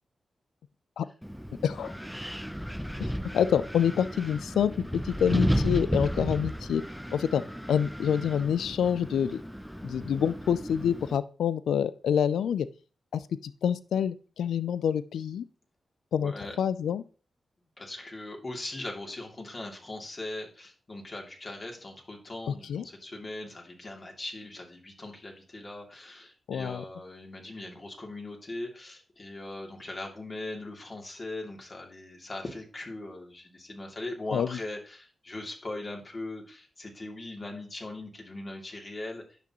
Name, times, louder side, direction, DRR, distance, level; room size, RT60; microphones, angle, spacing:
Wind, 1.2-11.2, equal, ahead, 0.6 m, -33 dB
voice 1, 1.6-2.0 3.0-6.8 7.1-7.4 7.7-9.4 9.8-12.7 13.1-15.4 16.1-17.0 22.5-22.8 26.5-26.8 34.3-34.5, left 8 dB, 85° left, 15 dB, 0.3 m, -27 dB
voice 2, 16.2-16.6 17.8-39.4, left 2 dB, 45° left, 1 dB, 2.6 m, -40 dB
10.0 x 6.0 x 3.0 m, 0.38 s
supercardioid pair, 45°, 0 cm